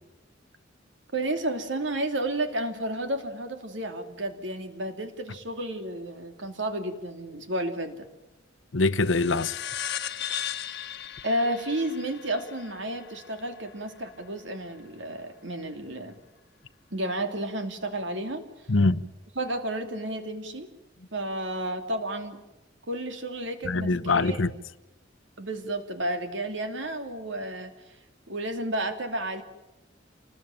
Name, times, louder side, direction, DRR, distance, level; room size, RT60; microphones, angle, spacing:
voice 1, 1.1-8.1 11.2-16.1 16.9-18.7 19.4-20.7 21.1-22.4 22.9-24.4 25.4-27.7 28.3-29.4, right 1 dB, 70° right, 2.8 m, -32 dB
voice 2, 8.7-9.6 18.7-19.0 23.6-24.5, left 3 dB, 85° left, 0.9 m, -23 dB
sound 1, 9.0-13.9, left 10 dB, 60° left, 1.2 m, -37 dB
27.5 x 20.0 x 9.1 m
head